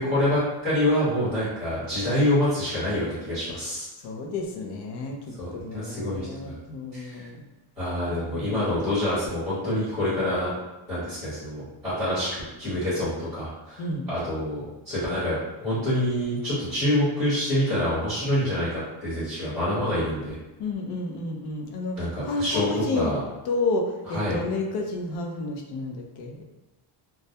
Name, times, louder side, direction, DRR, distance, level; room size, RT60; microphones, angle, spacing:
voice 1, 0.0-3.9 5.4-6.6 6.9-7.3 7.8-10.5 10.9-20.4 22.0-23.2 24.1-24.4, left 1 dB, 5° right, -13 dB, 0.9 m, -26 dB
voice 2, 4.0-7.4 8.1-8.9 13.8-14.0 20.6-23.1 23.4-26.4, left 2 dB, 55° left, 1 dB, 0.5 m, -31 dB
2.2 x 2.1 x 2.7 m, 1.0 s
cardioid pair, 180°, 50 cm